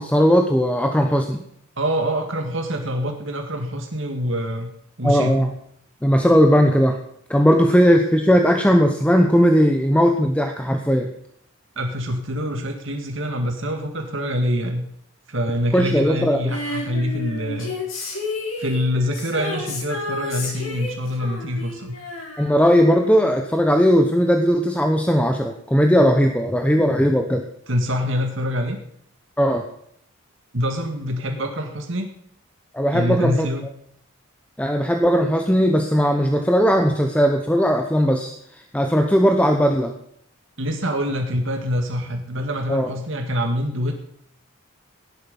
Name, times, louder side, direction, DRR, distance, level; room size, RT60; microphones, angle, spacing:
voice 1, 0.0-1.4 5.0-5.5 6.0-7.0 7.3-11.1 15.7-16.4 22.4-27.4 29.4-29.6 32.7-33.5 34.6-39.9 42.7-42.9, equal, 5° left, 4 dB, 1.0 m, -18 dB
voice 2, 1.8-4.7 5.0-5.5 11.8-14.9 15.3-17.7 18.6-21.9 27.7-28.8 30.5-32.1 32.9-33.7 40.6-44.0, equal, 60° right, 3 dB, 2.1 m, -25 dB
Female singing, 16.5-23.1 23.4-23.5, left 2 dB, 65° left, 5.8 m, -31 dB
17.0 x 11.5 x 5.5 m, 0.71 s
head